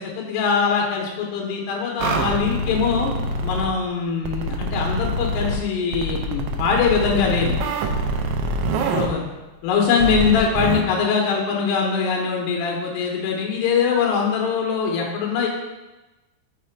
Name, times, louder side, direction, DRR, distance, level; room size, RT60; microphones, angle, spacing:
voice 1, 0.0-3.1 3.4-7.6 8.7-9.2 9.6-15.5, left 6 dB, 85° left, 0 dB, 3.6 m, -22 dB
sound 1, 2.0-3.7 4.3-5.6 5.9-9.1 10.0-10.8, right 2 dB, 85° right, 2.4 m, -25 dB
6.6 x 5.8 x 4.4 m, 1.1 s
omnidirectional pair, 5.6 m